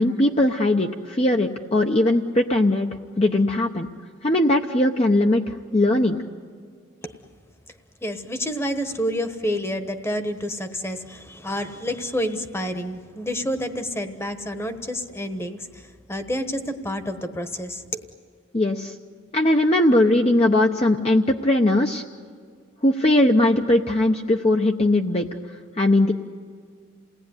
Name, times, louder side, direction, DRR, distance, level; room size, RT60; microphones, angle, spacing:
voice 1, 0.0-2.9 3.2-3.9 4.2-6.2 18.5-18.9 19.3-22.0 22.8-25.3 25.8-26.1, left 1 dB, 30° left, 2 dB, 0.8 m, -19 dB
voice 2, 8.0-18.0, equal, 10° left, 8 dB, 1.2 m, -29 dB
28.5 x 18.5 x 9.6 m, 2.1 s
head